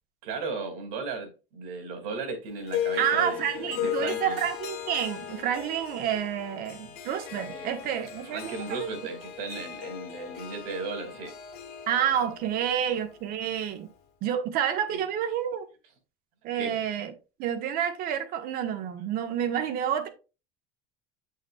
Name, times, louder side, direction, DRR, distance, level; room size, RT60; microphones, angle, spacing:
voice 1, 0.2-4.4 7.5-7.7 8.2-11.3 14.9-15.0 16.5-16.8, right 4 dB, 80° right, 2.9 m, -36 dB
Harp, 2.7-14.0, left 10 dB, 60° left, 2.0 m, -37 dB
voice 2, 3.0-8.5 8.8-8.9 11.9-13.9 14.2-15.7 16.4-17.1 17.4-20.1, right 9 dB, 50° right, 1.3 m, -29 dB
8.2 x 6.6 x 2.4 m
cardioid pair, 145°, 19 cm